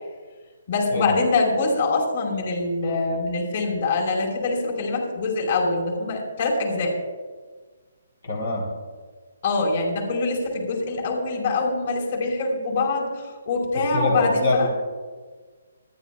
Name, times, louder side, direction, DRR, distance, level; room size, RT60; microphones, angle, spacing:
voice 1, 0.7-7.0 9.4-14.7, left 3 dB, 50° left, 0 dB, 4.7 m, -24 dB
voice 2, 8.3-8.7 13.9-14.7, left 3 dB, 85° left, -1 dB, 3.7 m, -24 dB
27.5 x 11.0 x 2.4 m, 1.4 s
hypercardioid pair, 150°, 0 cm